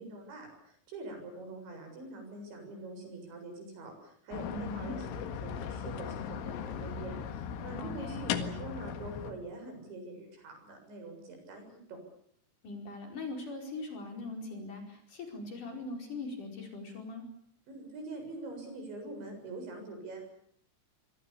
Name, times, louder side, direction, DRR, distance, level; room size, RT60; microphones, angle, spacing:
voice 1, 0.0-12.0 17.7-20.3, right 2 dB, 70° right, 5 dB, 9.5 m, -44 dB
sound 1, 4.3-9.3, left 8 dB, 85° left, 4.2 m, -38 dB
voice 2, 4.5-5.0 7.8-8.2 12.6-17.2, left 2 dB, 45° left, 3 dB, 6.1 m, -41 dB
27.5 x 23.5 x 7.0 m, 0.63 s
omnidirectional pair, 5.5 m